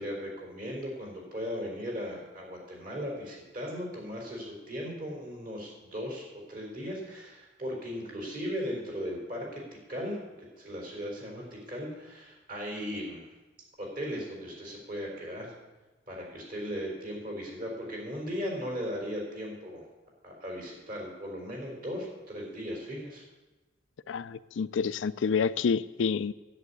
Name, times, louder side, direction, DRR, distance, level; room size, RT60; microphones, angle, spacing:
voice 1, 0.0-9.6 9.9-10.2 10.6-13.3 13.8-15.5 16.1-19.8 20.2-23.2, equal, 45° right, 0 dB, 4.3 m, -37 dB
voice 2, 24.1-26.3, left 6 dB, 85° left, 16 dB, 0.4 m, -28 dB
10.5 x 8.1 x 9.7 m, 1.2 s
head